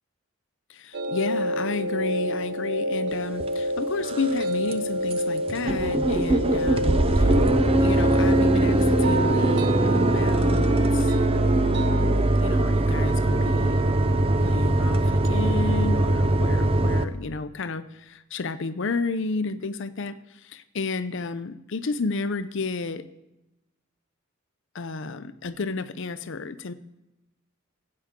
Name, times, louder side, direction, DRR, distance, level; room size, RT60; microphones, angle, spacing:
voice 1, 0.7-7.4 7.8-11.2 12.4-13.9 14.3-23.1 24.7-26.7, left 4 dB, 60° left, 12 dB, 0.6 m, -31 dB
sound 1, 0.9-12.2, equal, 55° right, 0.7 m, -29 dB
sound 2, 3.4-3.5 4.0-4.4 4.7-4.8 5.1-5.2 5.5-17.0, right 2 dB, 25° right, 0.5 m, -21 dB
15.0 x 8.7 x 3.7 m, 0.93 s
head